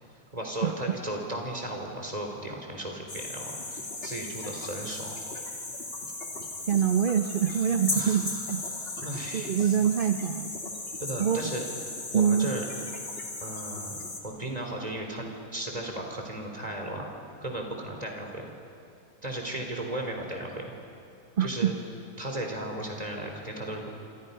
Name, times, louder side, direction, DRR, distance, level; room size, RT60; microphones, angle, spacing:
voice 1, 0.3-5.1 7.5-7.6 7.9-8.4 8.7-9.7 11.0-11.6 12.1-12.6 13.4-15.3 15.5-17.1 17.4-18.5 19.2-20.7 21.4-21.7 22.2-23.9, right 1 dB, 25° right, 2 dB, 3.7 m, -35 dB
sound 1, 3.1-14.2, left 2 dB, 40° left, 2.6 m, -36 dB
voice 2, 6.7-8.6 9.3-10.6 11.2-11.4 12.1-12.5 21.4-21.8, right 8 dB, 50° right, 7 dB, 0.7 m, -25 dB
27.5 x 25.5 x 5.6 m, 2.6 s
omnidirectional pair, 1.6 m